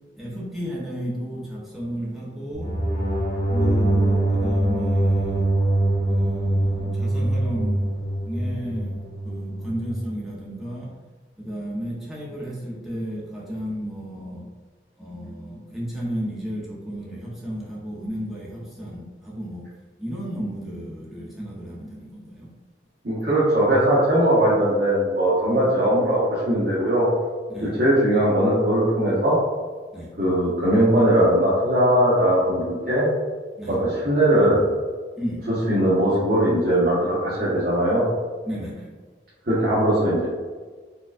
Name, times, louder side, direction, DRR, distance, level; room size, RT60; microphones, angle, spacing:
voice 1, 0.2-2.8 3.5-5.5 6.1-7.9 8.2-11.0 11.4-14.5 15.0-19.7 20.0-22.5 25.5-25.7 27.5-27.8 29.9-30.1 33.6-33.8 35.2-35.5 38.5-38.9, equal, ahead, -7 dB, 0.8 m, -33 dB
sound 1, 2.5-9.8, right 1 dB, 40° left, 1.1 m, -23 dB
voice 2, 23.0-27.1 27.6-29.4 30.2-33.1 33.7-34.6 35.7-38.0 39.5-40.3, right 1 dB, 55° right, -9 dB, 0.9 m, -20 dB
4.4 x 2.4 x 2.5 m, 1.4 s
head